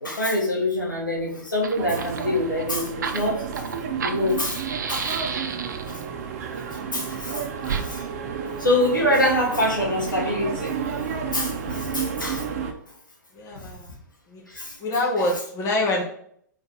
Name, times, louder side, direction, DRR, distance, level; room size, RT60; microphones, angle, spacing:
voice 1, 0.0-3.6 4.0-4.6 4.9-5.2 5.9-6.0 6.9-8.0 8.6-10.7 11.3-12.4 14.5-14.8, left 1 dB, 90° left, -2 dB, 1.9 m, -25 dB
Fire, 1.2-1.3 1.5-6.0 7.6-7.9, right 6 dB, 70° right, 0.7 m, -31 dB
sound 1, 1.8-12.7, right 6 dB, 50° right, 1.1 m, -31 dB
voice 2, 13.3-13.9 14.3-14.4 14.8-16.0, left 2 dB, 30° left, -2 dB, 2.0 m, -25 dB
5.0 x 4.2 x 4.8 m, 0.65 s
figure-of-eight pair, 110°, 10 cm